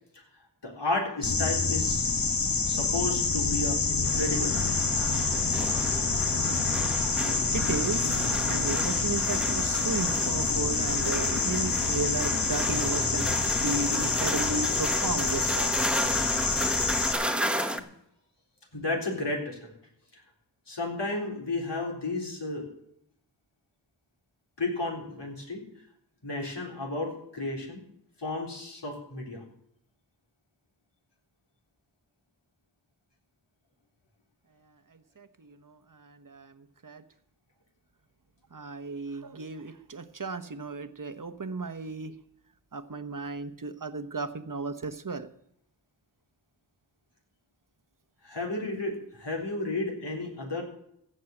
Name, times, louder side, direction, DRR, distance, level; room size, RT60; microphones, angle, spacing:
voice 1, 0.6-2.1 2.7-4.8 17.7-17.8 18.7-19.7 20.1-20.2 20.7-22.7 24.6-25.6 26.2-27.8 28.2-29.4 48.2-50.6, left 2 dB, 75° left, 0 dB, 3.9 m, -32 dB
sound 1, 1.2-17.1, left 4 dB, 55° left, 1.2 m, -27 dB
sound 2, 4.0-17.8, equal, ahead, 1.2 m, -34 dB
voice 2, 7.5-15.8 35.2-37.0 38.5-42.1 42.7-45.3, right 3 dB, 50° right, 10 dB, 1.1 m, -35 dB
15.5 x 6.6 x 7.9 m, 0.74 s
wide cardioid pair, 45°, 42 cm